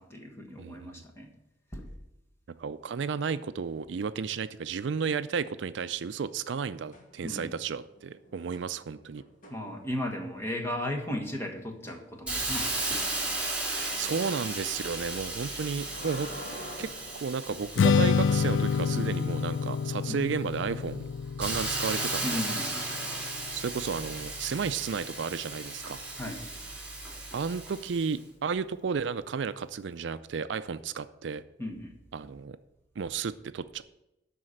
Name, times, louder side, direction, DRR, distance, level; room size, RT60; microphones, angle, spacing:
voice 1, 0.0-1.3 1.7-1.9 7.2-7.5 9.5-13.0 20.1-20.2 22.2-22.9 26.2-26.4 31.6-31.9, left 1 dB, 15° left, 2 dB, 1.5 m, -36 dB
voice 2, 0.6-1.0 2.6-9.2 13.7-16.3 16.8-21.0 21.4-22.4 23.5-26.0 27.3-31.4 32.1-32.6 33.0-33.8, right 5 dB, 70° right, 13 dB, 0.4 m, -33 dB
sound 1, 6.9-7.6 7.9-10.3 11.9-12.1 15.4-18.0 20.2-20.3, equal, 45° left, 2.1 m, -47 dB
Hiss, 12.3-19.8 20.3-28.1, right 2 dB, 5° right, 2.4 m, -35 dB
Strum, 17.8-24.1, left 6 dB, 85° left, 0.4 m, -28 dB
12.0 x 4.2 x 7.9 m, 0.91 s
head